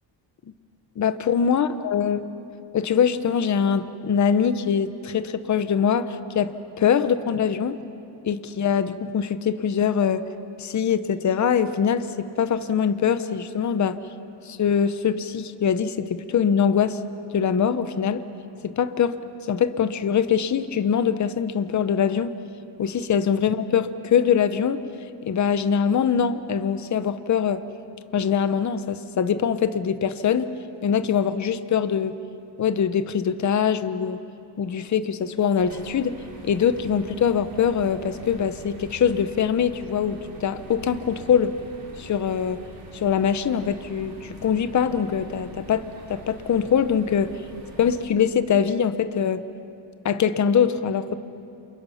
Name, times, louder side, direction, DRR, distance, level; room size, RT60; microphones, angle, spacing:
voice 1, 1.0-2.3 2.7-7.8 8.2-10.3 10.6-14.0 14.5-17.0 17.3-18.2 18.6-19.2 19.5-22.3 22.8-24.8 25.2-27.6 28.1-30.5 30.8-32.2 32.6-34.2 34.6-36.1 36.4-41.5 42.0-42.6 42.9-45.8 46.1-47.3 47.8-49.4 50.0-51.2, left 7 dB, 40° left, 11 dB, 0.9 m, -23 dB
sound 1, 35.6-48.0, right 2 dB, 50° right, 4.1 m, -44 dB
28.5 x 28.0 x 5.7 m, 2.6 s
cardioid pair, 145°, 46 cm